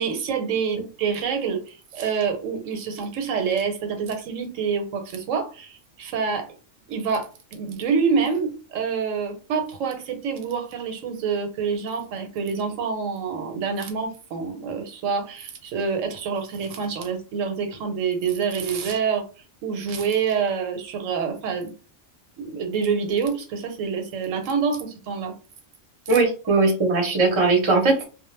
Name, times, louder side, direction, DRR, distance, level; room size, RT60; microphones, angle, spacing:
voice 1, 0.0-6.5 6.9-19.3 19.6-21.7 22.4-25.3, right 6 dB, 85° right, 6 dB, 1.0 m, -27 dB
voice 2, 26.1-28.1, right 3 dB, 35° right, 2 dB, 0.5 m, -19 dB
2.2 x 2.0 x 3.1 m, 0.36 s
omnidirectional pair, 1.3 m